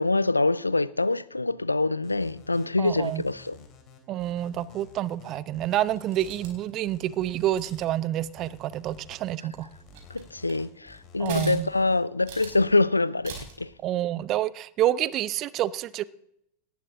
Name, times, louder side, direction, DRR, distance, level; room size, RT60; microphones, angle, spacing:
voice 1, 0.0-3.6 10.1-13.7, left 2 dB, 80° left, 0.5 m, -25 dB
sound 1, 2.0-12.7, left 4 dB, 35° left, 3.8 m, -51 dB
voice 2, 2.8-3.2 4.1-9.7 11.2-11.7 13.8-16.0, right 13 dB, 35° right, 0.7 m, -28 dB
sound 2, 6.0-6.7 7.5-8.0 9.3-9.4 9.8-10.7 11.2-11.8 12.3-12.7 13.2-13.7, right 5 dB, 50° right, 5.0 m, -42 dB
18.5 x 14.0 x 3.8 m
figure-of-eight pair, 90°, 0 cm